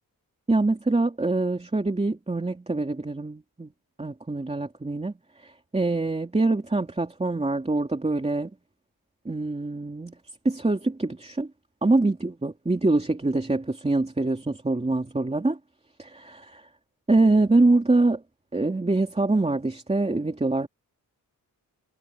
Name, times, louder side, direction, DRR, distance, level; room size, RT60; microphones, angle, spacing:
voice 1, 0.5-3.7 4.0-8.5 9.2-10.1 10.4-11.5 11.8-15.6 16.0-16.4 17.1-18.2 18.5-20.7, right 2 dB, 15° right, 2.8 m, -24 dB
wide cardioid pair, 170°, 36 cm